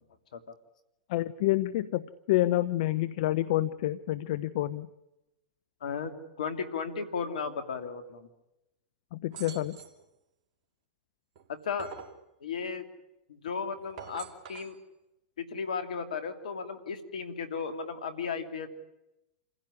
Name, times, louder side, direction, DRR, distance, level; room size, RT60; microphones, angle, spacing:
voice 1, 1.1-4.9 9.1-9.8, left 15 dB, 60° left, 15 dB, 0.8 m, -28 dB
voice 2, 5.8-8.3 11.5-11.9 12.4-12.8 13.3-14.8 15.4-18.7, left 5 dB, 75° left, 8 dB, 2.8 m, -35 dB
sound 1, 9.3-10.0 11.4-12.2 13.8-14.8, right 7 dB, 50° right, 2.9 m, -46 dB
28.0 x 16.0 x 9.8 m, 0.93 s
hypercardioid pair, 110°, 4 cm